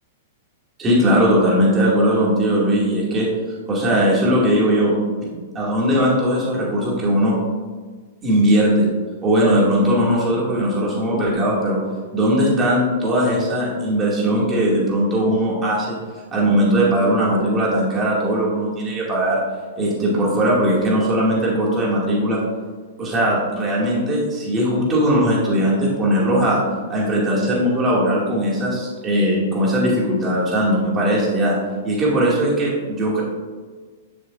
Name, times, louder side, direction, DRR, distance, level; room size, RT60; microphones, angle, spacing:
voice 1, 0.8-4.9 5.2-5.3 5.5-7.4 8.2-8.9 9.2-11.8 12.1-16.0 16.3-19.4 19.8-22.4 23.0-26.6 26.9-31.5 31.8-33.2, equal, 20° right, -5 dB, 2.2 m, -19 dB
11.0 x 7.4 x 2.5 m, 1.5 s
hypercardioid pair, 150°, 0 cm